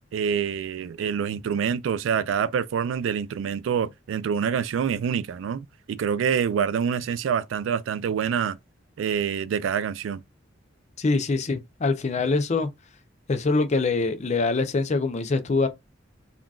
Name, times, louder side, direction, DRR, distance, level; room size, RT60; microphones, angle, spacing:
voice 1, 0.1-8.6 9.0-10.2, right 7 dB, 85° right, 0.3 m, -26 dB
voice 2, 11.0-12.7 13.3-15.7, left 3 dB, 35° left, 0.5 m, -24 dB
3.7 x 2.3 x 2.3 m
head